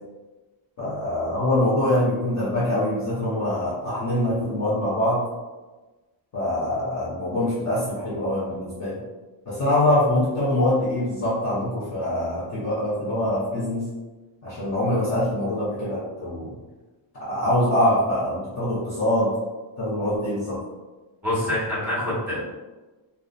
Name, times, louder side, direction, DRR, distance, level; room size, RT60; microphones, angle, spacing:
voice 1, 0.8-5.3 6.3-9.0 9.5-13.9 14.4-16.6 17.2-19.3 19.8-20.6, left 1 dB, 35° left, -10 dB, 0.7 m, -24 dB
voice 2, 21.2-22.4, left 1 dB, 5° right, -10 dB, 1.2 m, -25 dB
2.6 x 2.1 x 2.4 m, 1.2 s
cardioid pair, 150°, 46 cm